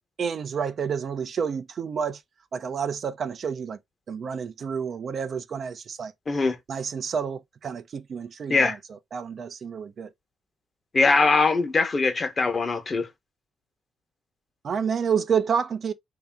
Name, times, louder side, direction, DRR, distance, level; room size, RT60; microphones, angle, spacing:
voice 1, 0.2-2.2 2.5-3.8 4.1-6.1 6.7-10.1 14.6-15.9, right 6 dB, 50° right, 0.5 m, -29 dB
voice 2, 10.9-13.1, left 3 dB, 35° left, 1.0 m, -22 dB
3.4 x 2.8 x 3.5 m
cardioid pair, 90°, 0 cm